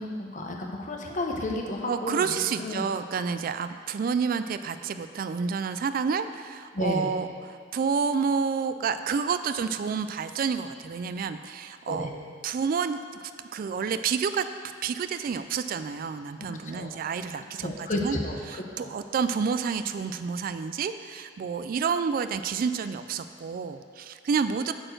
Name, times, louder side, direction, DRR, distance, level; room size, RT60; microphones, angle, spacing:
voice 1, 0.0-2.9 6.7-7.1 11.9-12.1 16.6-17.0 17.6-18.9, left 1 dB, 45° left, 1 dB, 0.9 m, -32 dB
voice 2, 1.9-12.1 12.4-13.0 13.5-14.5 14.8-18.2 18.5-24.7, right 6 dB, 50° right, 11 dB, 0.3 m, -29 dB
8.8 x 4.4 x 6.5 m, 2.4 s
head